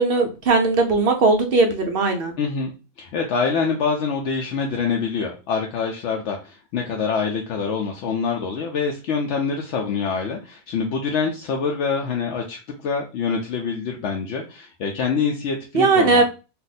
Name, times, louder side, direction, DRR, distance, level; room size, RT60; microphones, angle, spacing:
voice 1, 0.0-2.3 15.7-16.2, right 3 dB, 70° right, 4 dB, 0.5 m, -18 dB
voice 2, 2.4-16.2, left 5 dB, 65° left, 1 dB, 0.7 m, -25 dB
2.6 x 2.2 x 3.9 m, 0.32 s
omnidirectional pair, 1.5 m